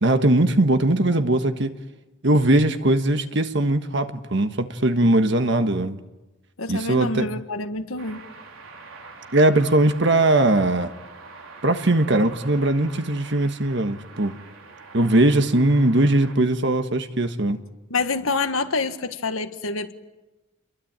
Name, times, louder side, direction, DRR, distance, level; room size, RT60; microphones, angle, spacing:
voice 1, 0.0-1.7 2.2-6.0 6.7-7.3 9.3-10.9 11.6-14.3 14.9-17.6, right 1 dB, 55° right, 1.5 m, -20 dB
voice 2, 6.6-8.2 17.9-19.9, left 3 dB, 80° left, 1.7 m, -27 dB
sound 1, 8.0-16.4, right 4 dB, 80° right, 4.0 m, -44 dB
29.0 x 23.0 x 8.9 m
head